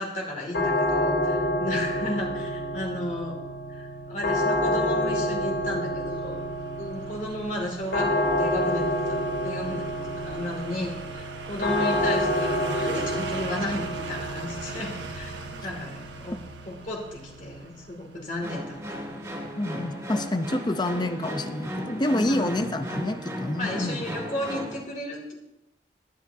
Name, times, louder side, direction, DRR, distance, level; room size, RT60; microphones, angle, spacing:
voice 1, 0.0-3.4 3.7-6.4 6.8-16.4 16.7-18.8 22.2-22.5 23.6-25.3, left 1 dB, 40° left, -1 dB, 2.4 m, -34 dB
sound 1, 0.5-19.4, equal, 85° left, 3.1 m, -29 dB
sound 2, 4.6-19.3 19.6-19.7, right 3 dB, 80° right, 1.3 m, -41 dB
sound 3, 18.4-24.8, equal, 15° right, 2.2 m, -36 dB
voice 2, 19.5-24.2, left 1 dB, 25° left, 9 dB, 0.7 m, -28 dB
21.5 x 9.2 x 2.8 m, 0.91 s
head